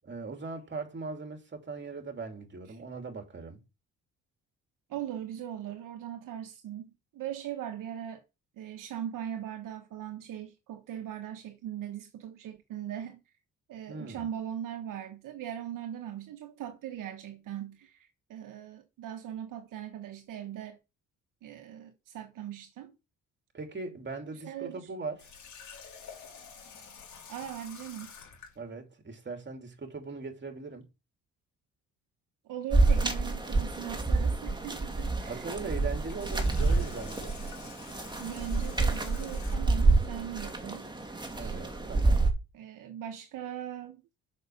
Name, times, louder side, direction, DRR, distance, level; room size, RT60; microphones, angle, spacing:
voice 1, 0.0-3.6 13.9-14.3 23.5-25.3 28.6-30.9 35.3-37.4 41.3-42.2, right 4 dB, 35° right, 2.9 m, -40 dB
voice 2, 4.9-8.2 8.6-13.2 13.7-20.8 21.4-22.9 24.3-24.9 27.3-28.1 32.4-35.7 38.2-40.9 41.3-41.6 42.5-44.0, right 10 dB, 70° right, 1.2 m, -40 dB
Water tap faucet, 25.2-28.6 36.0-39.8, left 6 dB, 60° left, 3.5 m, -49 dB
sound 1, 32.7-42.3, right 3 dB, 15° right, 2.3 m, -28 dB
6.5 x 6.3 x 7.0 m
supercardioid pair, 65°, 33 cm